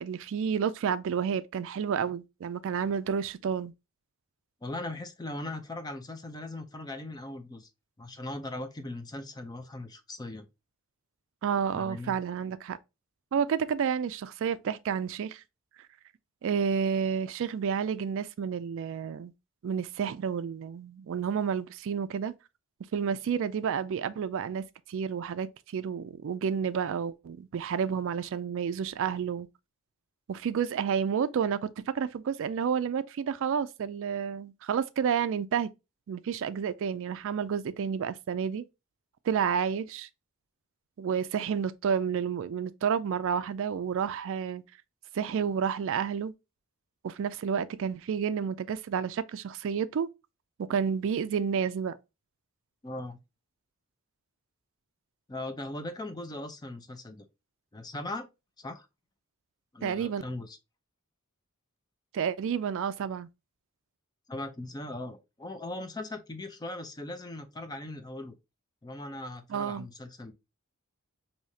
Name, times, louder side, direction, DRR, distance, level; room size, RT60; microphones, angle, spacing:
voice 1, 0.0-3.7 11.4-12.8 13.3-15.4 16.4-19.3 19.6-22.3 22.9-29.5 30.3-35.7 36.1-38.6 39.2-40.1 41.0-44.6 45.1-46.3 47.0-50.1 50.6-52.0 59.8-60.2 62.1-63.3 69.5-69.9, right 7 dB, 60° right, 0.3 m, -30 dB
voice 2, 4.6-7.7 8.0-10.5 11.7-12.2 52.8-53.2 55.3-57.3 57.7-58.3 58.6-58.9 59.7-60.6 64.3-68.3 68.8-70.3, left 2 dB, 20° left, 0.5 m, -39 dB
4.9 x 2.8 x 2.6 m
head